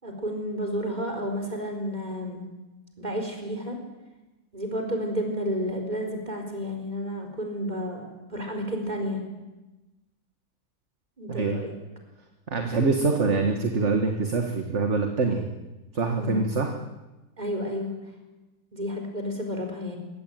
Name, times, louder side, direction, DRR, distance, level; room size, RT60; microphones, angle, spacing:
voice 1, 0.0-2.4 3.0-3.8 4.5-9.2 11.2-11.7 16.2-16.5 17.4-17.9 18.7-20.0, equal, 25° right, 3 dB, 4.5 m, -31 dB
voice 2, 11.3-11.6 12.5-15.5 15.9-16.7, right 4 dB, 45° right, 5 dB, 1.9 m, -25 dB
22.0 x 17.0 x 9.2 m, 1.1 s
omnidirectional pair, 1.7 m